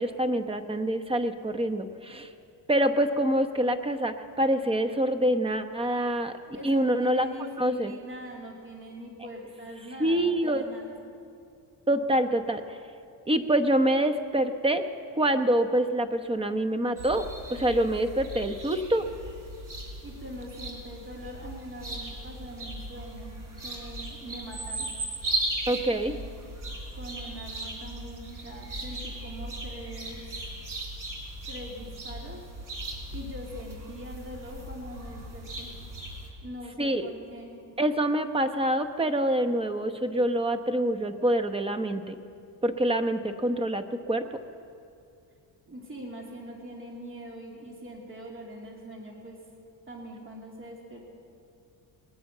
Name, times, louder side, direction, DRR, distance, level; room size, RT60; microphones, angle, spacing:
voice 1, 0.0-2.3 2.7-6.3 6.6-7.3 7.6-7.9 10.0-10.6 11.9-12.8 13.3-14.8 15.1-19.1 25.7-26.1 36.8-37.1 37.8-42.1 42.6-44.2, right 1 dB, 15° right, 9 dB, 1.0 m, -26 dB
voice 2, 6.5-11.0 20.0-24.9 25.9-26.2 26.9-30.2 31.5-32.4 33.1-35.7 36.4-37.6 45.7-49.4 49.9-51.1, equal, 30° right, 0 dB, 2.7 m, -42 dB
sound 1, 17.0-36.3, right 1 dB, 45° right, 3.6 m, -38 dB
20.5 x 9.3 x 7.3 m, 2.5 s
cardioid pair, 90°, 44 cm